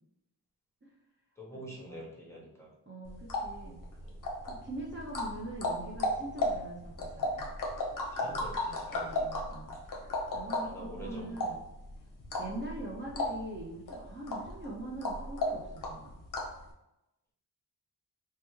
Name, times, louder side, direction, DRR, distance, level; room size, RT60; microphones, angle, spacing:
voice 1, 1.4-2.7 4.0-4.1 8.2-9.2 10.6-11.3, equal, 5° left, -5 dB, 0.8 m, -46 dB
voice 2, 2.9-3.8 4.5-7.5 8.2-9.8 10.3-11.6 12.4-16.2, right 2 dB, 30° right, -5 dB, 0.6 m, -43 dB
sound 1, 3.1-16.6, left 1 dB, 50° left, 0.6 m, -35 dB
3.3 x 2.2 x 3.0 m, 0.89 s
wide cardioid pair, 90°, 41 cm